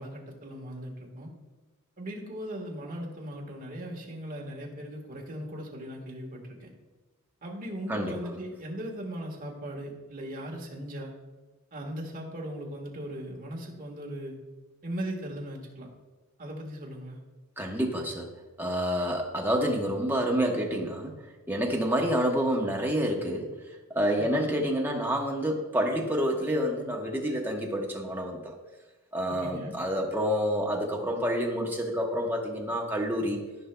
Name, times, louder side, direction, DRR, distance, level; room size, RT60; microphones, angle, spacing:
voice 1, 0.0-1.3 2.0-6.7 7.4-11.1 11.7-14.3 14.8-15.9 16.4-17.2 24.2-24.5 29.3-29.8, equal, 40° right, 0 dB, 1.5 m, -38 dB
voice 2, 17.6-18.3 18.6-21.1 21.5-23.5 23.9-28.4 29.1-33.4, equal, 10° right, 0 dB, 1.0 m, -28 dB
14.0 x 5.5 x 2.3 m, 1.2 s
head